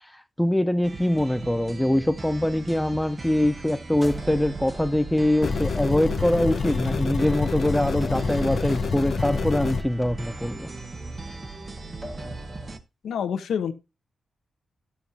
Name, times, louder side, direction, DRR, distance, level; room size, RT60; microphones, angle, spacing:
voice 1, 0.4-10.7, left 1 dB, 5° left, 0.4 m, -23 dB
sound 1, 0.8-12.8, right 3 dB, 35° right, 1.0 m, -39 dB
sound 2, 3.9-12.7, right 2 dB, 10° right, 1.2 m, -42 dB
sound 3, 5.4-9.8, left 4 dB, 60° left, 0.8 m, -27 dB
voice 2, 13.0-13.7, left 7 dB, 90° left, 1.0 m, -27 dB
12.5 x 7.2 x 2.8 m
cardioid pair, 95°, 0 cm